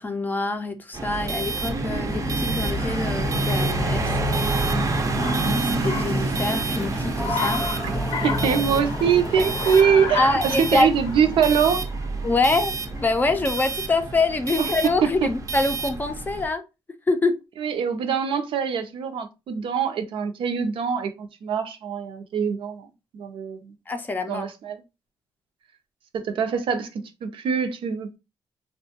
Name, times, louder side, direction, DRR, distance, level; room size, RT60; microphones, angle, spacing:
voice 1, 0.0-4.6 5.6-7.6 10.1-10.9 12.2-16.6 17.1-17.4 23.9-24.5, left 3 dB, 20° left, 0.4 m, -25 dB
sound 1, 0.9-16.5, right 2 dB, 40° right, 0.5 m, -27 dB
Car, 1.7-14.5, left 5 dB, 75° left, 0.5 m, -36 dB
sound 2, 4.0-10.7, equal, 5° right, 0.7 m, -33 dB
voice 2, 8.2-11.8 14.6-14.7 15.0-15.1 17.6-22.9 23.1-23.7 24.3-24.8 26.1-26.9 27.2-28.1, right 7 dB, 85° right, 0.5 m, -23 dB
3.5 x 2.2 x 2.7 m
wide cardioid pair, 150°, 9 cm